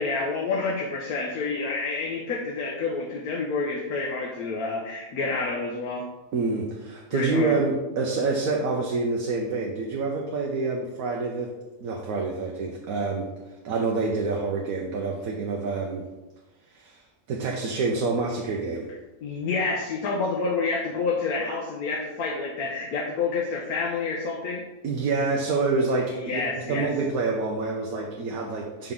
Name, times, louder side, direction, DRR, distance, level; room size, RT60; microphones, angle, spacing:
voice 1, 0.0-6.0 7.1-7.5 19.2-24.6 26.1-26.9, left 4 dB, 90° left, -1 dB, 1.3 m, -28 dB
voice 2, 6.3-11.5 11.8-13.3 13.6-16.1 16.7-17.0 17.3-18.9 24.8-28.9, right 3 dB, 75° right, 0 dB, 1.1 m, -27 dB
6.0 x 5.0 x 3.7 m, 1.1 s
omnidirectional pair, 1.5 m